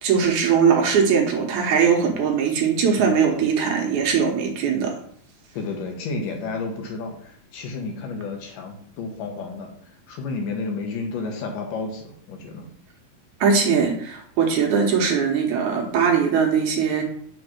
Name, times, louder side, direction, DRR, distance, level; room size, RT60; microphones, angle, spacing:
voice 1, 0.0-4.9 13.4-17.0, right 6 dB, 70° right, 2 dB, 2.2 m, -20 dB
voice 2, 5.5-12.7, left 3 dB, 75° left, 2 dB, 2.7 m, -31 dB
6.1 x 3.9 x 5.9 m, 0.63 s
omnidirectional pair, 3.9 m